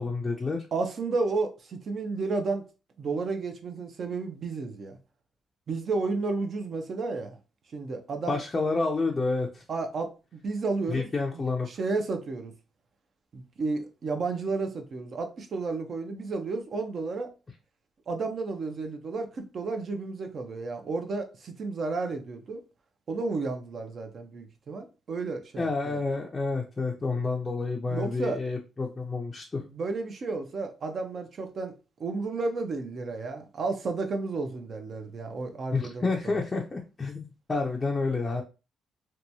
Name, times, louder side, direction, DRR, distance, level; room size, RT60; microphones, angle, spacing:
voice 1, 0.0-0.7 8.3-9.6 10.9-11.7 25.6-29.6 35.7-38.4, left 3 dB, 25° left, 0.4 m, -29 dB
voice 2, 0.7-2.6 3.0-5.0 5.7-7.4 7.7-8.4 9.7-10.1 10.4-11.1 11.3-12.5 13.3-17.3 18.1-22.6 23.1-26.0 27.9-28.4 29.6-31.7 32.0-36.4, right 3 dB, 50° right, 0.6 m, -32 dB
2.9 x 2.2 x 2.6 m
cardioid pair, 90°, 0 cm